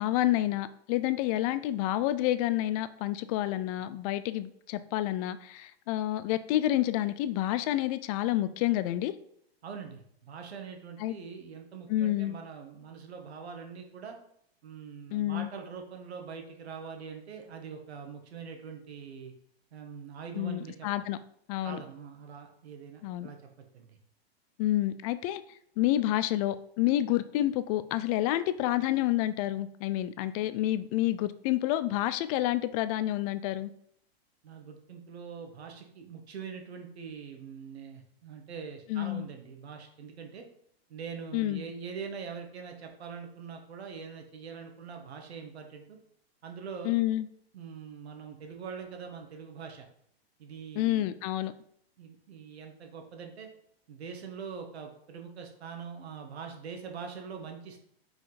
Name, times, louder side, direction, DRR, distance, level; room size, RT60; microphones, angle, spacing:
voice 1, 0.0-9.1 11.0-11.2 11.9-12.4 15.1-15.5 20.4-21.2 21.5-21.8 23.0-23.3 24.6-25.4 25.8-33.7 38.9-39.3 41.3-41.6 46.8-47.3 50.8-51.5, left 14 dB, 35° left, 13 dB, 0.4 m, -29 dB
voice 2, 9.6-14.2 14.6-19.3 19.7-20.9 21.6-23.4 23.7-24.0 34.4-40.4 40.9-46.0 46.4-46.9 47.5-49.9 50.4-51.1 52.0-53.5 53.9-57.8, right 6 dB, 90° right, 4 dB, 1.5 m, -43 dB
5.2 x 4.7 x 4.1 m, 0.68 s
hypercardioid pair, 135°, 31 cm